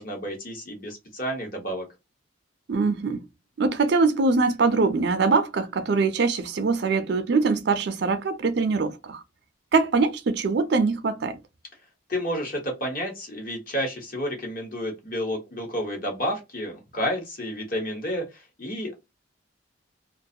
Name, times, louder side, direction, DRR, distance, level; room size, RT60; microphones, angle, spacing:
voice 1, 0.0-1.9 12.1-18.9, equal, 45° left, 1.0 m, -30 dB
voice 2, 2.7-3.2 3.6-9.2 9.7-11.4, right 4 dB, 55° right, 0.4 m, -23 dB
2.4 x 2.2 x 2.7 m
head